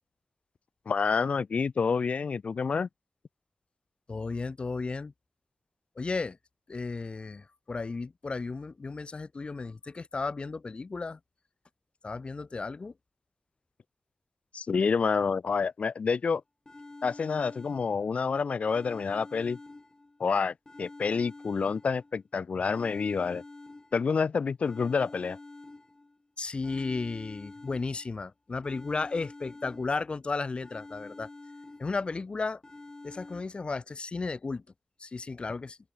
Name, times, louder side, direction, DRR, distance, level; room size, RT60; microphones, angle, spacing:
voice 1, 0.9-2.9 14.5-16.4 17.0-19.6 20.2-23.4 23.9-25.4, left 5 dB, 80° left, 1.1 m, -28 dB
voice 2, 4.1-5.1 6.0-6.4 6.7-11.2 12.0-12.9 26.4-31.3 31.8-32.6 33.0-34.6 35.0-35.8, left 4 dB, 55° left, 1.8 m, -34 dB
sound 1, 16.2-16.3 16.7-18.2 18.7-20.2 20.7-22.2 22.7-24.2 24.6-26.2 26.6-28.2 28.6-30.2 30.6-32.2 32.6-33.4, left 2 dB, 30° left, 5.8 m, -48 dB
wide cardioid pair, 90°, 2 cm